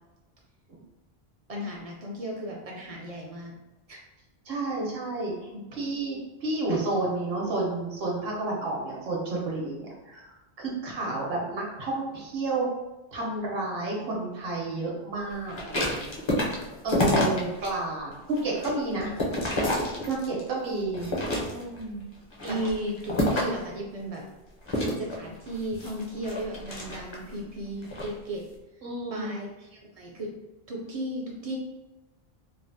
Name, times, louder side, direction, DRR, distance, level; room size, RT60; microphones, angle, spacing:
voice 1, 1.5-3.5 3.9-4.0 5.5-5.6 11.0-11.1 17.4-17.5 22.4-24.2 25.0-28.4 29.1-30.3 30.7-31.6, right 1 dB, 50° right, -1 dB, 0.4 m, -35 dB
voice 2, 4.5-12.7 13.1-16.1 16.8-19.2 20.1-21.1 21.5-22.0 28.8-29.3, right 2 dB, 70° right, -2 dB, 1.0 m, -31 dB
sound 1, 15.5-17.7 18.1-20.5 20.9-21.8 22.3-23.7 24.7-27.3 27.8-28.1, left 1 dB, 35° left, 0.5 m, -28 dB
3.2 x 2.0 x 2.6 m, 1.0 s
omnidirectional pair, 1.0 m